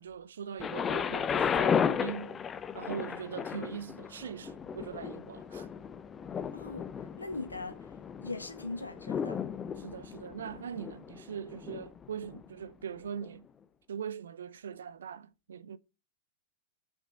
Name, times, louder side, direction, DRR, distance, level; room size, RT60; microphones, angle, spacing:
voice 1, 0.0-2.4 2.7-5.7 9.8-13.4 13.9-15.8, right 7 dB, 65° right, 0.7 m, -41 dB
Thunder, 0.6-12.4 13.2-13.3, left 7 dB, 20° left, 0.6 m, -34 dB
voice 2, 6.5-6.9 7.2-7.8 8.2-9.4, left 3 dB, 80° left, 1.7 m, -40 dB
7.2 x 6.0 x 7.3 m
figure-of-eight pair, 90°, 0 cm